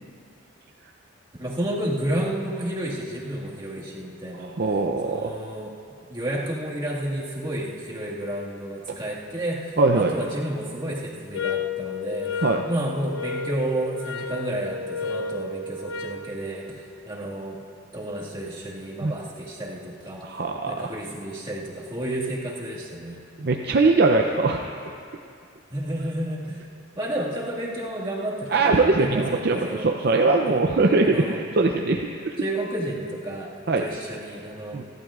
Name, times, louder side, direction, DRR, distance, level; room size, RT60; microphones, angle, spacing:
voice 1, 1.4-4.5 5.0-5.7 6.1-17.6 17.9-20.2 20.7-23.2 25.7-26.6 27.0-29.9 30.5-30.6 31.0-31.4 32.4-33.5 33.8-34.8, right 1 dB, 25° right, -6 dB, 1.8 m, -31 dB
voice 2, 4.4-5.3 8.9-9.0 9.8-10.1 12.4-12.6 19.0-19.1 20.2-20.9 23.4-24.8 28.5-32.4 33.7-33.8 34.7-34.8, right 3 dB, 50° right, 2 dB, 0.5 m, -21 dB
sound 1, 11.3-16.3, left 5 dB, 75° left, 0.7 m, -32 dB
29.0 x 12.0 x 2.4 m, 2.4 s
head